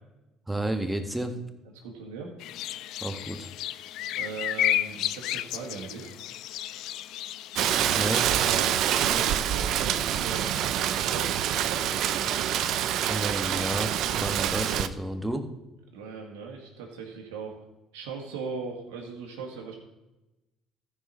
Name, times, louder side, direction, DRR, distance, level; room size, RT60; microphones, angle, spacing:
voice 1, 0.5-1.3 3.0-3.5 7.9-8.3 13.0-13.9 14.2-15.5, right 1 dB, 10° right, 6 dB, 1.5 m, -31 dB
voice 2, 1.8-2.3 4.2-6.1 8.3-8.7 9.0-10.7 11.0-11.9 15.9-17.6 17.9-19.7, right 5 dB, 80° right, 0 dB, 1.8 m, -38 dB
sound 1, 2.4-8.2, left 13 dB, 70° left, 0.4 m, -32 dB
Rain, 7.6-14.9, right 10 dB, 65° right, 0.6 m, -26 dB
14.0 x 4.9 x 5.6 m, 1.0 s
supercardioid pair, 70°, 0 cm